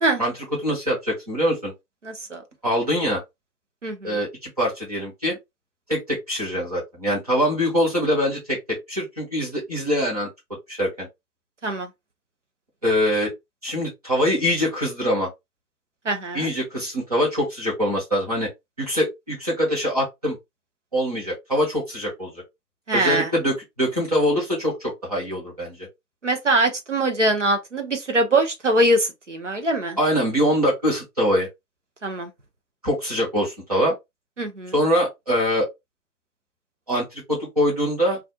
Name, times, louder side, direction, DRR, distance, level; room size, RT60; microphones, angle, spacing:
voice 1, 0.6-1.7 2.6-3.2 4.0-5.4 5.9-10.3 10.7-11.1 12.8-13.3 13.6-15.3 16.3-18.5 18.8-20.4 20.9-22.3 22.9-25.7 30.0-31.5 32.8-33.9 34.7-35.7 36.9-38.2, equal, 25° right, 1.0 m, -23 dB
voice 2, 2.0-2.4 3.8-4.2 11.6-11.9 16.0-16.5 22.9-23.3 26.2-30.0 32.0-32.3 34.4-34.7, right 1 dB, 45° right, 0.6 m, -22 dB
2.4 x 2.3 x 2.6 m
figure-of-eight pair, 160°, 49 cm